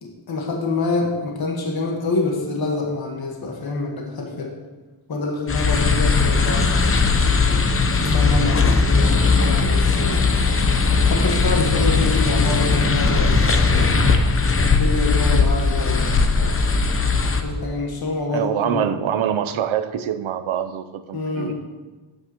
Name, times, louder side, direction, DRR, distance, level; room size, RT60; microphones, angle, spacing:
voice 1, 0.0-4.5 5.1-7.1 8.0-10.2 11.0-13.6 14.7-16.1 16.4-16.8 17.4-18.8 21.1-21.5, left 3 dB, 50° left, 0 dB, 1.5 m, -26 dB
sound 1, 5.5-17.4, left 4 dB, 30° left, 0.8 m, -18 dB
voice 2, 18.3-21.5, right 9 dB, 80° right, 10 dB, 0.7 m, -24 dB
13.0 x 8.6 x 3.0 m, 1.2 s
wide cardioid pair, 145°, 47 cm